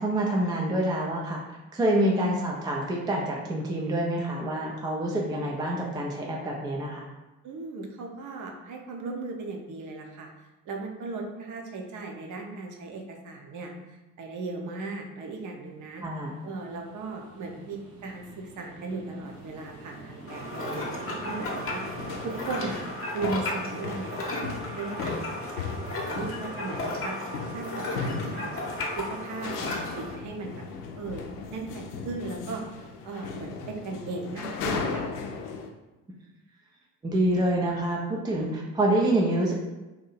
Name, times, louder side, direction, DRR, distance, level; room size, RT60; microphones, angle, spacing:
voice 1, 0.0-1.4 1.7-7.0 16.0-16.3 37.0-39.5, right 1 dB, 10° right, -2 dB, 0.3 m, -26 dB
voice 2, 7.4-10.3 10.7-16.0 16.4-22.8 23.1-24.4 24.7-27.2 27.5-28.7 28.9-30.6 30.9-31.2 31.5-32.6 33.0-35.1, right 3 dB, 40° right, 2 dB, 0.7 m, -37 dB
sound 1, 15.9-22.9, right 2 dB, 80° right, 0.6 m, -46 dB
sound 2, 19.3-19.4 20.2-20.3 20.6-21.0 21.3-35.7, left 4 dB, 70° left, 0.6 m, -37 dB
sound 3, 20.3-30.2, left 1 dB, 25° left, 0.8 m, -34 dB
2.8 x 2.6 x 4.1 m, 1.1 s
figure-of-eight pair, 50°, 48 cm